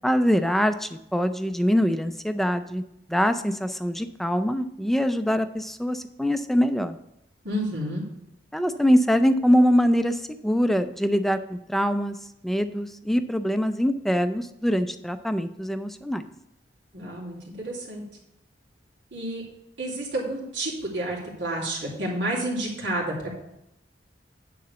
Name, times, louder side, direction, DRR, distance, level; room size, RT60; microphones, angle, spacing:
voice 1, 0.0-2.8 3.1-7.0 8.5-12.2 12.4-16.3, equal, ahead, 9 dB, 0.4 m, -23 dB
voice 2, 7.4-8.0 16.9-18.0 19.1-19.4 19.8-23.3, right 1 dB, 90° right, -4 dB, 2.9 m, -30 dB
9.6 x 3.9 x 6.9 m, 0.82 s
head